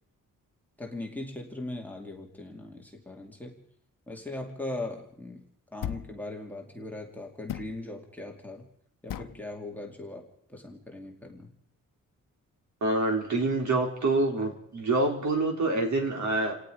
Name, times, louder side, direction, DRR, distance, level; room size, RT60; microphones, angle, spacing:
voice 1, 0.8-3.6 4.1-8.7 9.0-11.5, left 2 dB, 5° left, 0 dB, 2.5 m, -39 dB
sound 1, 5.8-6.2 7.5-7.8 9.1-9.4, left 11 dB, 80° left, 0.8 m, -36 dB
voice 2, 12.8-16.5, right 2 dB, 60° right, 2 dB, 4.0 m, -26 dB
29.0 x 18.0 x 5.0 m, 0.69 s
wide cardioid pair, 180°, 32 cm